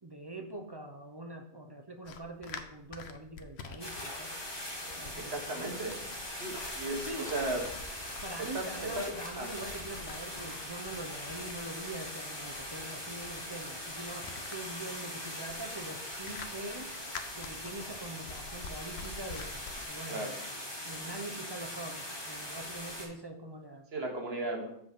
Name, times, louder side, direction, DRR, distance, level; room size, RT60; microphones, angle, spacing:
voice 1, 0.0-4.3 5.0-5.8 7.1-7.5 8.2-16.9 17.3-20.4 20.8-23.9, right 2 dB, 30° right, 3 dB, 0.5 m, -44 dB
sound 1, 2.0-19.8, left 4 dB, 70° left, 0.9 m, -48 dB
sound 2, 3.8-23.1, left 1 dB, 20° left, 1.5 m, -41 dB
voice 2, 5.2-6.0 6.3-7.6 8.5-8.7 9.0-9.1 9.4-9.5 20.1-20.3 23.9-24.7, right 2 dB, 65° right, 1 dB, 1.5 m, -35 dB
7.8 x 3.6 x 5.6 m, 0.71 s
omnidirectional pair, 1.2 m